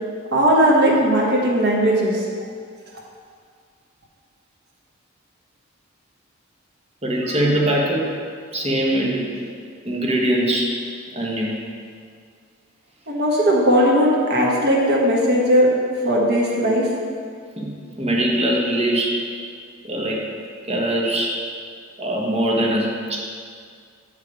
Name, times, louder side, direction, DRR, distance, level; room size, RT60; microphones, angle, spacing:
voice 1, 0.3-2.2 13.1-15.7 16.0-16.9, equal, 55° right, -3 dB, 1.3 m, -17 dB
voice 2, 7.0-8.1 8.5-9.3 9.8-10.7 11.1-11.6 17.6-19.2 19.8-20.3 20.7-21.3 22.0-23.2, right 1 dB, 30° right, -2 dB, 1.1 m, -22 dB
6.7 x 5.0 x 4.8 m, 2.1 s
head